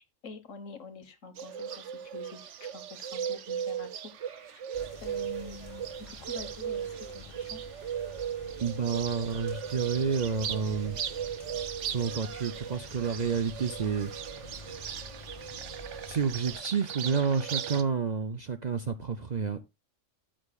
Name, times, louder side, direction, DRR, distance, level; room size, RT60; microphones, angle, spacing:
voice 1, 0.0-4.7 5.0-7.6, left 3 dB, 75° left, 1.7 m, -47 dB
Bird, 1.4-17.8, right 9 dB, 70° right, 1.0 m, -37 dB
sound 1, 4.7-16.6, left 2 dB, 25° left, 3.7 m, -48 dB
voice 2, 8.6-11.0 11.8-14.1 14.5-14.7 16.1-19.6, right 6 dB, 45° right, 0.6 m, -30 dB
13.0 x 7.6 x 2.3 m
omnidirectional pair, 1.3 m